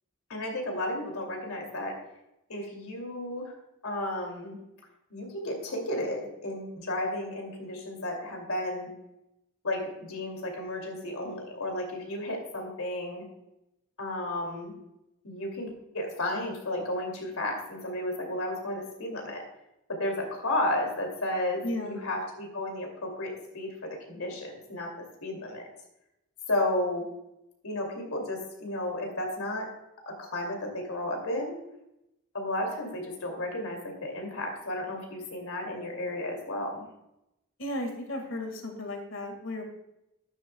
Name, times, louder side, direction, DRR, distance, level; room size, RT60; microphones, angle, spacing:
voice 1, 0.3-2.0 2.5-3.5 3.8-4.6 5.1-8.9 9.6-13.2 14.0-14.7 15.2-19.4 19.9-25.7 26.5-27.1 27.6-29.7 30.1-31.6 32.3-36.8, left 1 dB, 85° left, 1 dB, 2.7 m, -33 dB
voice 2, 21.6-22.0 37.6-39.6, left 1 dB, 65° left, 4 dB, 1.9 m, -34 dB
12.5 x 11.0 x 2.3 m, 0.89 s
head